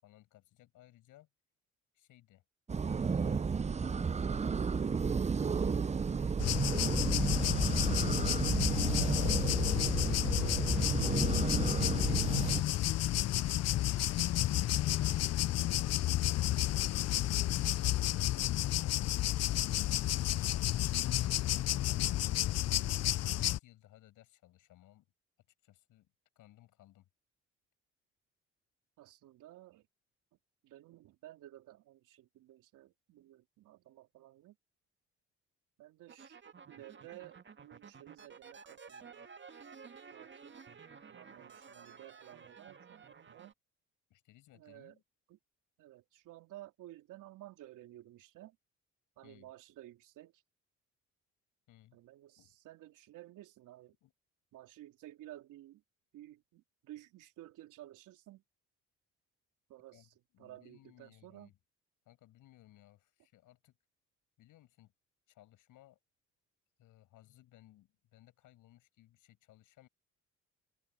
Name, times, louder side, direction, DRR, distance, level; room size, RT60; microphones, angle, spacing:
voice 1, 0.0-1.3 1.9-2.4 2.9-4.2 4.5-7.7 11.1-14.4 21.7-25.1 25.6-27.1 44.1-45.0 49.2-49.5 51.7-52.0 52.4-52.6 54.0-54.1 59.9-60.1 60.3-61.6 62.1-63.8 64.4-64.9 65.3-66.0 66.8-69.9, left 14 dB, 75° left, 7.2 m, -62 dB
sound 1, 2.7-12.6, right 5 dB, 20° right, 0.6 m, -32 dB
sound 2, 6.4-23.6, left 14 dB, 55° left, 0.6 m, -31 dB
voice 2, 8.9-10.6 17.6-17.9 29.0-29.9 30.6-34.6 35.8-39.3 40.1-40.5 41.1-43.5 44.5-45.0 45.3-45.4 45.8-48.6 49.2-50.4 51.9-54.0 54.5-55.8 56.1-58.4 59.7-61.5, right 14 dB, 75° right, 3.5 m, -54 dB
sound 3, 36.1-43.5, right 5 dB, 35° right, 1.9 m, -53 dB
open air
supercardioid pair, 60°, 31 cm